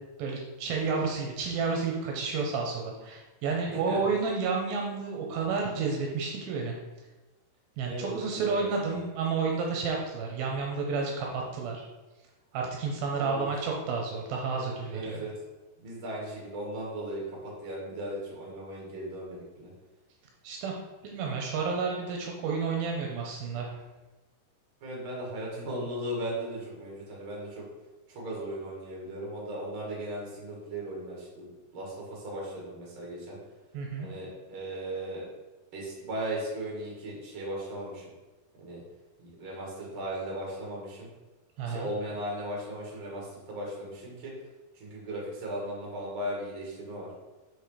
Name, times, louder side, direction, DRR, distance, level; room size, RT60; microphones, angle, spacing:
voice 1, 0.2-6.8 7.8-11.9 12.5-15.3 20.4-20.7 21.0-23.7 33.7-34.1 41.6-41.9, right 4 dB, 80° right, 0 dB, 2.6 m, -31 dB
voice 2, 7.8-8.9 13.1-13.5 14.9-15.3 15.8-17.2 17.6-19.7 24.8-27.6 28.1-33.4 34.0-35.2 35.7-38.0 38.6-38.8 39.2-41.1 41.7-43.2 43.5-44.3 44.8-47.1, right 1 dB, 40° right, -4 dB, 2.6 m, -37 dB
6.3 x 4.9 x 5.0 m, 1.1 s
omnidirectional pair, 4.3 m